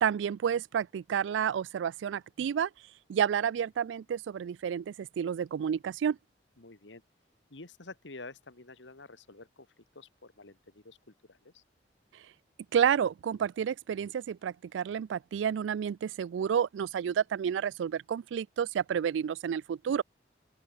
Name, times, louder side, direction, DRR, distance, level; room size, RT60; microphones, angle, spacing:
voice 1, 0.0-2.7 3.1-6.2 12.7-20.0, right 8 dB, 90° right, 0.3 m, -30 dB
voice 2, 6.6-7.0 7.5-11.6, left 3 dB, 90° left, 2.2 m, -49 dB
open air
head